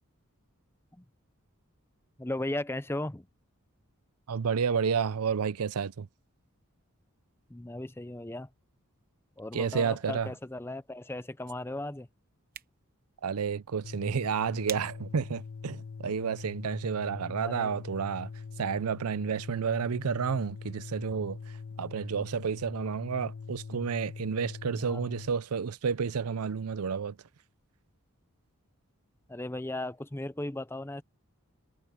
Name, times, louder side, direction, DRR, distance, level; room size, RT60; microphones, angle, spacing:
voice 1, 2.2-3.3 7.5-8.5 9.4-12.1 17.4-17.8 24.8-25.0 29.3-31.0, left 1 dB, 10° left, 0.6 m, -36 dB
voice 2, 4.3-6.1 9.5-10.3 13.2-18.3 18.6-21.4 21.8-27.2, right 6 dB, 85° right, 0.5 m, -31 dB
sound 1, 12.3-17.4, right 10 dB, 40° right, 0.9 m, -49 dB
sound 2, 13.8-25.3, left 5 dB, 65° left, 0.5 m, -43 dB
head